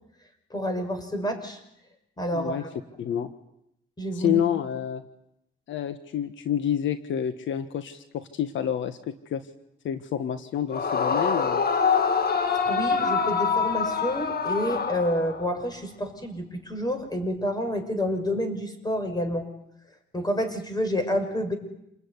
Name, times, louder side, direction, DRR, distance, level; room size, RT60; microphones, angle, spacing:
voice 1, 0.5-1.6 2.2-2.7 4.0-4.4 12.6-19.5 20.1-21.6, equal, 20° left, 7 dB, 6.3 m, -29 dB
voice 2, 2.3-2.6 3.0-3.3 4.1-5.0 5.7-9.5 9.8-11.6, left 9 dB, 75° left, 11 dB, 1.5 m, -28 dB
Yell / Screaming, 10.7-15.6, left 5 dB, 50° left, 2.4 m, -25 dB
28.0 x 21.0 x 9.8 m, 0.81 s
cardioid pair, 90°, 20 cm